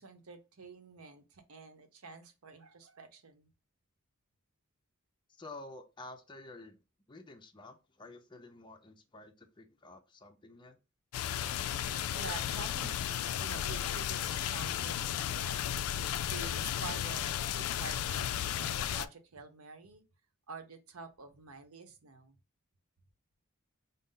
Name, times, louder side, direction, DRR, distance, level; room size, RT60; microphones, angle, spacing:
voice 1, 0.0-3.5 12.1-15.8 16.3-17.2 17.5-20.0 20.5-22.4, right 4 dB, 80° right, 0.8 m, -48 dB
voice 2, 5.4-6.8 7.1-10.8, left 2 dB, 20° left, 0.5 m, -50 dB
sound 1, 11.1-19.1, left 10 dB, 75° left, 0.3 m, -34 dB
5.2 x 2.0 x 3.7 m
head